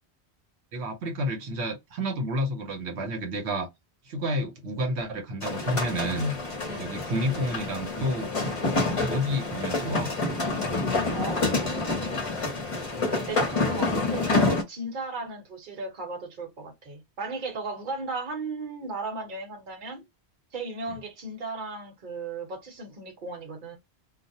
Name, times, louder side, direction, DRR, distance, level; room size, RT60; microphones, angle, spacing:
voice 1, 0.7-3.7 4.0-6.3 6.8-8.3 9.1-10.1, equal, 80° right, 1.1 m, -30 dB
sound 1, 5.4-14.6, left 3 dB, 35° left, 0.8 m, -28 dB
voice 2, 11.1-12.2 13.0-20.1 20.5-23.8, right 3 dB, 50° right, 1.0 m, -36 dB
2.3 x 2.1 x 2.6 m
omnidirectional pair, 1.1 m